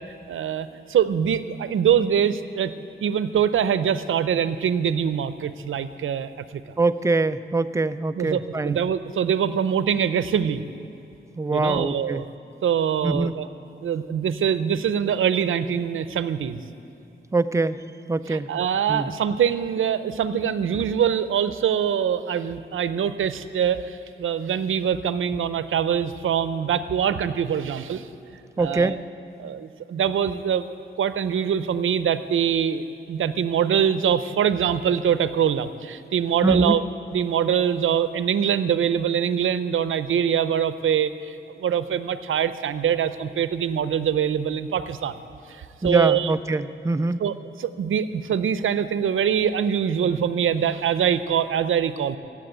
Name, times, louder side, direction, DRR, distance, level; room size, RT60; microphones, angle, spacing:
voice 1, 0.3-2.7 3.0-6.4 8.2-10.6 11.5-12.2 12.6-13.5 13.8-16.6 18.3-28.1 28.6-29.0 29.4-30.7 31.0-36.8 37.1-45.2 45.5-46.3 47.2-47.3 47.6-52.2, right 8 dB, 85° right, 13 dB, 0.6 m, -24 dB
voice 2, 6.8-8.8 11.4-12.2 13.0-13.3 17.3-17.8 18.1-18.5 18.9-19.1 28.6-29.0 36.4-36.8 45.8-47.2, right 3 dB, 15° right, 11 dB, 0.4 m, -23 dB
16.0 x 7.5 x 8.9 m, 2.8 s
wide cardioid pair, 115°, 20 cm